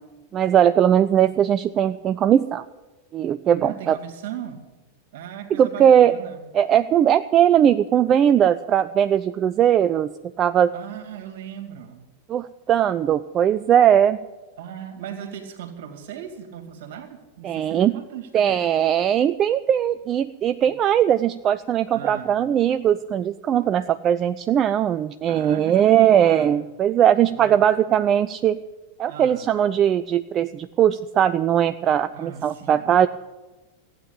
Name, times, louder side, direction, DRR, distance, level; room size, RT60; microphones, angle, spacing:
voice 1, 0.3-2.7 3.1-4.0 5.6-6.1 6.5-10.1 10.4-10.7 12.3-14.2 17.4-17.9 18.3-28.6 29.0-33.1, right 9 dB, 30° right, 12 dB, 0.4 m, -19 dB
voice 2, 3.5-4.6 5.1-6.5 10.7-12.1 14.6-18.7 20.7-20.8 21.9-22.4 25.3-26.6 27.4-27.7 29.1-29.5 32.1-33.0, right 9 dB, 55° right, 4 dB, 2.5 m, -38 dB
15.5 x 9.1 x 8.7 m, 1.1 s
figure-of-eight pair, 90°, 0 cm